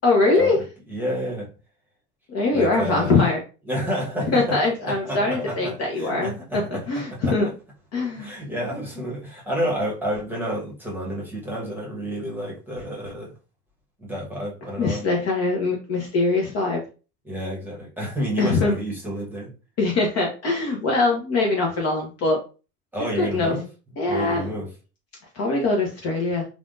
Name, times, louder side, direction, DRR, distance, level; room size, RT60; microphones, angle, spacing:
voice 1, 0.0-0.6 2.3-3.4 4.3-6.3 6.7-7.5 7.9-8.3 14.8-16.8 18.4-18.8 19.8-22.4 23.2-23.5 24.0-24.4 25.3-26.5, left 3 dB, 30° left, 0 dB, 0.8 m, -22 dB
voice 2, 0.9-1.5 2.5-3.3 3.7-6.8 7.1-7.5 8.1-13.3 14.0-15.1 17.2-19.5 22.9-23.7 24.1-24.7, equal, 5° right, -3 dB, 1.2 m, -30 dB
3.4 x 2.4 x 2.5 m, 0.34 s
hypercardioid pair, 95°, 48 cm